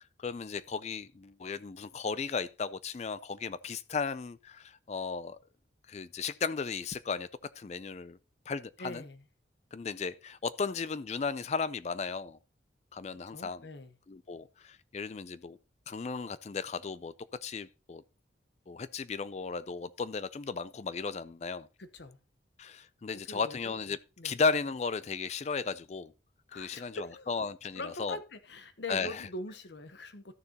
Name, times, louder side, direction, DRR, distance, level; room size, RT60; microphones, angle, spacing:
voice 1, 0.2-5.4 5.9-7.3 7.6-8.2 8.5-9.0 9.7-12.4 12.9-13.7 14.1-15.6 15.9-17.1 17.4-18.0 18.7-21.7 22.6-24.0 24.2-26.1 26.5-28.2 28.9-29.2, left 5 dB, 35° left, 0.4 m, -35 dB
voice 2, 8.8-9.2 13.1-13.9 21.8-22.2 23.2-23.7 24.2-24.4 26.5-27.3 27.7-30.3, left 2 dB, 65° left, 0.9 m, -43 dB
13.5 x 6.7 x 2.8 m
head